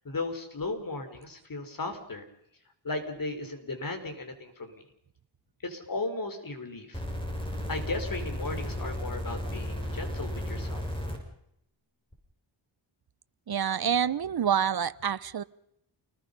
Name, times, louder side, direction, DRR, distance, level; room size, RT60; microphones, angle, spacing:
voice 1, 0.0-2.2 2.8-4.8 5.6-7.0 7.7-10.8, left 2 dB, 45° left, 7 dB, 5.0 m, -36 dB
sound 1, 6.9-11.2 12.1-12.2, equal, 10° left, 6.9 m, -34 dB
voice 2, 13.5-15.4, right 8 dB, 50° right, 15 dB, 1.1 m, -27 dB
29.0 x 20.5 x 5.5 m, 0.76 s
wide cardioid pair, 95°, 48 cm